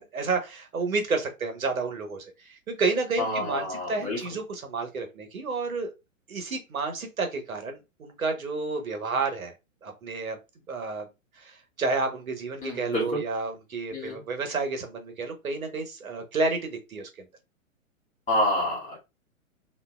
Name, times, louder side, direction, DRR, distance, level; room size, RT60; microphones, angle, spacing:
voice 1, 0.0-5.9 6.3-9.5 9.8-10.4 10.7-11.1 11.4-17.1, right 3 dB, 75° right, 5 dB, 1.0 m, -30 dB
voice 2, 3.2-4.2 12.6-13.2 13.9-14.2 18.3-19.0, left 1 dB, 15° left, -3 dB, 2.0 m, -28 dB
3.3 x 2.7 x 2.3 m, 0.25 s
figure-of-eight pair, 115°, 42 cm